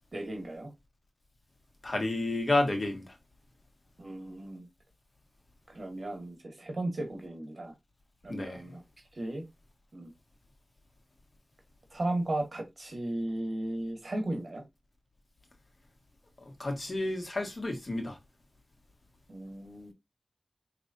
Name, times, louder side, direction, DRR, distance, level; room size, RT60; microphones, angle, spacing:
voice 1, 0.1-0.7 4.0-4.7 5.7-7.7 8.2-8.8 9.1-9.5 9.9-10.1 11.9-14.6 19.3-19.9, right 1 dB, 60° right, 1.5 m, -35 dB
voice 2, 1.8-3.1 8.3-8.6 16.4-18.2, left 2 dB, 55° left, 1.5 m, -31 dB
5.0 x 3.2 x 2.5 m
wide cardioid pair, 50°, 0 cm